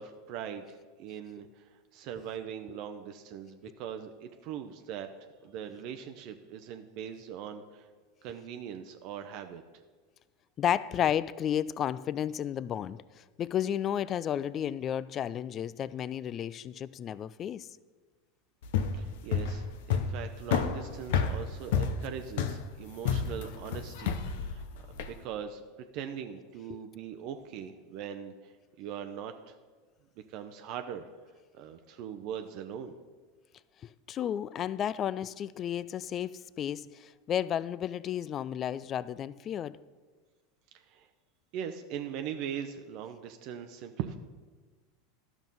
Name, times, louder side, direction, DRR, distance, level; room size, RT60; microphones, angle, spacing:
voice 1, 0.0-5.1 5.4-7.9 8.2-9.6 18.9-24.6 25.2-25.6 25.9-29.6 30.3-31.1 31.5-33.0 40.7-41.1 41.5-44.2, right 8 dB, 55° right, 0.7 m, -41 dB
voice 2, 10.6-17.7 26.7-26.8 33.8-39.8, left 10 dB, 40° left, 0.4 m, -32 dB
sound 1, 18.6-25.2, left 6 dB, 70° left, 0.7 m, -30 dB
12.0 x 6.0 x 5.4 m
hypercardioid pair, 90°, 0 cm